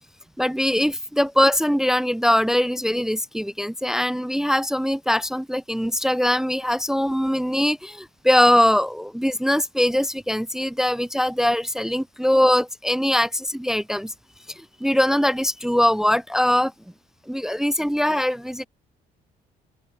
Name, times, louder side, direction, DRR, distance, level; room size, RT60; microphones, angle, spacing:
voice 1, 0.4-14.1 14.6-16.7 17.3-18.7, left 1 dB, 5° right, 0.4 m, -22 dB
open air
cardioid pair, 110°, 17 cm